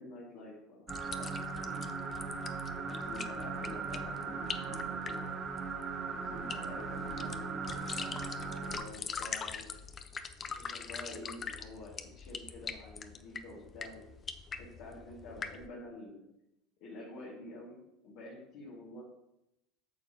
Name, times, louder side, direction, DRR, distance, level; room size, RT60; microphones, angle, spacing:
voice 1, 0.0-1.9 2.8-5.3 6.1-9.7 10.6-14.1 14.5-16.2 16.8-19.0, left 2 dB, 65° left, -6 dB, 2.0 m, -48 dB
sound 1, 0.9-15.7, left 6 dB, 35° left, 0.6 m, -43 dB
sound 2, 0.9-8.8, right 5 dB, 35° right, 1.0 m, -38 dB
8.7 x 6.6 x 3.0 m, 0.84 s
hypercardioid pair, 85°, 0 cm